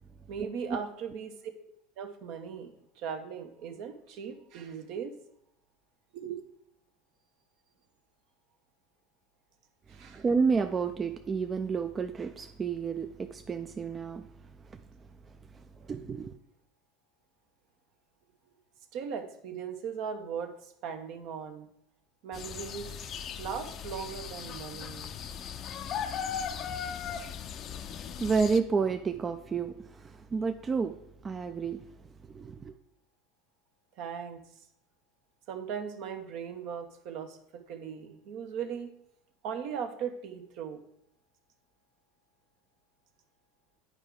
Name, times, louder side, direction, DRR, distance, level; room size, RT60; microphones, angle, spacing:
voice 1, 0.3-1.5 2.0-5.1 6.1-6.6 9.9-10.2 18.9-21.7 22.2-22.9 23.4-25.1 34.0-34.6 35.5-38.9 39.4-40.8, right 7 dB, 60° right, 0.9 m, -38 dB
voice 2, 9.9-14.3 14.6-14.8 15.5-16.3 28.2-31.0 31.2-31.8 32.3-32.7, right 5 dB, 30° right, 0.4 m, -30 dB
sound 1, 22.3-28.6, left 7 dB, 45° left, 0.5 m, -38 dB
9.6 x 4.7 x 3.7 m
hypercardioid pair, 80°, 0 cm